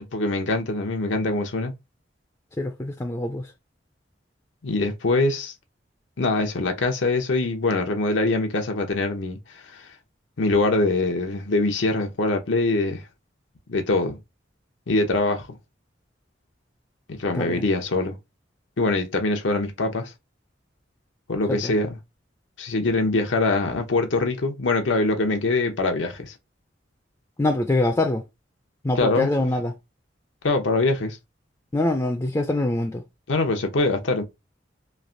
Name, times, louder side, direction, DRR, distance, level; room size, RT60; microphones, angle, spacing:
voice 1, 0.1-1.7 4.6-5.5 6.2-9.4 9.7-9.9 10.4-13.0 13.7-14.2 14.9-15.5 17.1-18.2 18.8-20.1 21.3-22.0 22.6-26.3 29.0-29.3 30.4-31.2 33.3-34.2, left 2 dB, 90° left, 0.7 m, -23 dB
voice 2, 2.6-3.5 17.3-17.6 21.5-21.7 27.4-28.2 28.8-29.7 31.7-33.0, left 2 dB, 15° left, 0.4 m, -24 dB
3.2 x 2.4 x 2.5 m
head